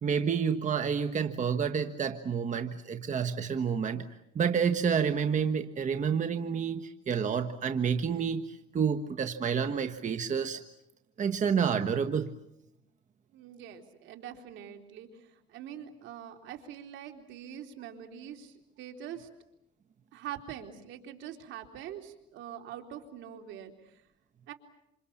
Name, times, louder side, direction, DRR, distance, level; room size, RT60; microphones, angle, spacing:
voice 1, 0.0-4.0 4.3-10.6 11.2-12.3, right 6 dB, 40° right, 8 dB, 1.4 m, -29 dB
voice 2, 13.3-19.3 20.1-24.0 24.5-24.6, right 10 dB, 75° right, 5 dB, 3.5 m, -44 dB
27.5 x 27.5 x 7.2 m, 0.83 s
cardioid pair, 100°, 20 cm